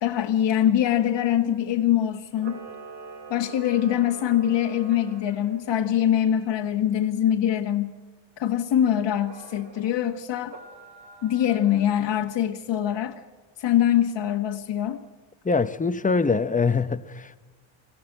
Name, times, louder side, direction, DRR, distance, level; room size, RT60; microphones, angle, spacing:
voice 1, 0.0-2.6 3.3-7.9 8.4-10.5 11.2-13.1 13.6-15.0, left 10 dB, 60° left, 1.4 m, -23 dB
Camera, 2.3-5.6 9.2-9.9 10.4-12.3, right 5 dB, 60° right, 4.8 m, -44 dB
voice 2, 15.4-17.4, left 4 dB, 15° left, 0.8 m, -23 dB
25.5 x 16.5 x 7.8 m
cardioid pair, 110°, 48 cm